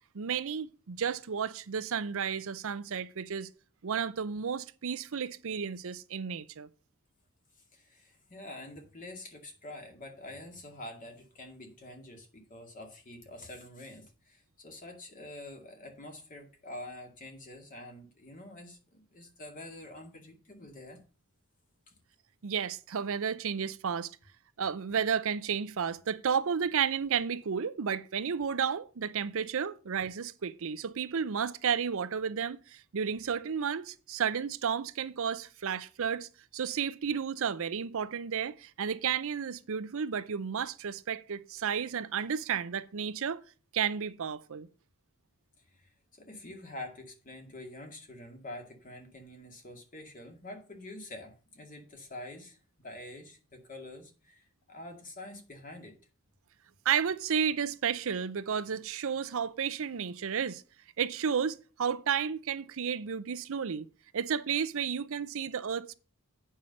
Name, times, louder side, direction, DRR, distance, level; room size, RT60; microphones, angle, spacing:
voice 1, 0.1-3.5 3.8-6.7 22.4-24.1 24.6-36.3 36.5-43.4 43.7-44.7 56.9-60.6 61.0-63.9 64.1-66.0, right 7 dB, 70° right, 0.6 m, -32 dB
voice 2, 7.7-21.0 21.9-22.0 45.7-45.9 46.2-56.0, left 1 dB, 40° left, 2.2 m, -46 dB
8.5 x 5.6 x 6.4 m
head